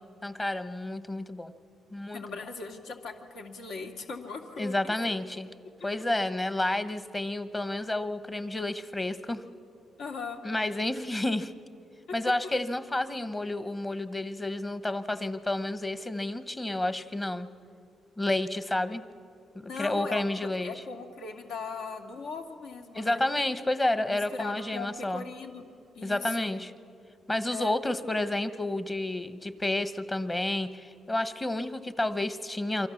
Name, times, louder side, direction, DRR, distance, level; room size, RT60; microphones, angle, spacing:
voice 1, 0.2-1.5 1.9-2.2 4.6-5.5 5.8-9.4 10.4-11.5 12.1-17.5 18.2-19.0 19.8-20.7 22.9-25.2 26.0-26.7 27.3-32.9, left 1 dB, 15° left, 12 dB, 1.0 m, -30 dB
voice 2, 2.1-4.9 10.0-10.4 19.6-20.2 20.6-23.2 24.1-25.7 26.0-26.5 27.5-27.8, left 4 dB, 80° left, 3 dB, 2.2 m, -39 dB
28.0 x 24.5 x 7.1 m, 2.5 s
cardioid pair, 130°, 0 cm